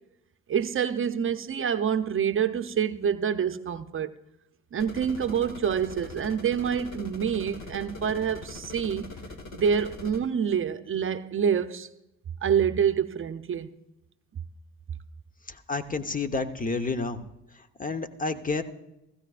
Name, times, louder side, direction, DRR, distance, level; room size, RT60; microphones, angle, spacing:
voice 1, 0.5-4.1 4.7-9.1 9.5-11.9 12.4-13.7, right 7 dB, 45° right, 0.7 m, -27 dB
sound 1, 4.8-10.2, left 3 dB, 65° left, 2.2 m, -42 dB
voice 2, 15.7-17.2 17.8-18.6, left 3 dB, 25° left, 1.0 m, -29 dB
16.5 x 15.5 x 2.5 m
cardioid pair, 90°, 30 cm